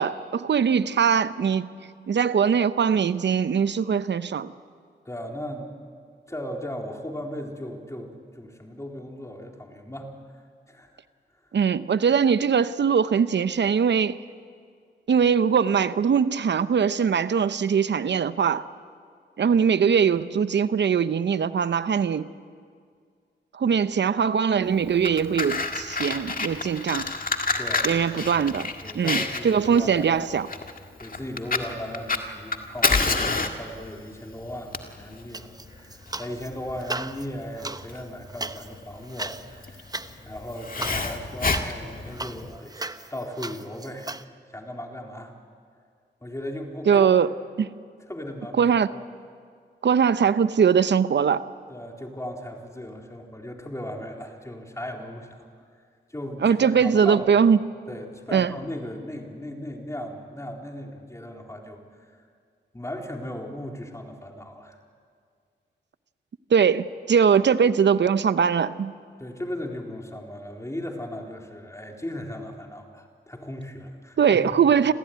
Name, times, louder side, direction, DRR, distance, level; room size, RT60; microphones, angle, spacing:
voice 1, 0.0-1.7 2.1-4.5 11.5-14.2 15.1-18.6 19.4-22.3 23.6-27.1 27.8-28.7 28.9-29.2 29.4-30.5 46.9-47.3 47.6-47.7 48.6-48.9 49.8-51.4 56.4-57.6 58.3-58.5 66.5-68.9 74.2-74.9, right 7 dB, 65° right, 14 dB, 0.8 m, -21 dB
voice 2, 5.0-5.8 6.1-10.1 10.7-11.0 27.6-28.4 28.8-30.1 30.4-30.5 31.0-39.9 40.2-44.2 44.5-45.4 46.2-47.2 48.1-48.8 51.7-55.3 56.1-57.3 57.9-62.1 62.7-64.8 69.2-74.5, left 1 dB, 15° left, 1 dB, 4.1 m, -37 dB
Fire, 24.8-42.6, left 3 dB, 45° left, 1.9 m, -29 dB
sound 1, 35.3-36.5 36.8-44.2, right 2 dB, 20° right, 0.9 m, -37 dB
26.5 x 15.5 x 9.5 m, 2.1 s
cardioid pair, 50°, 20 cm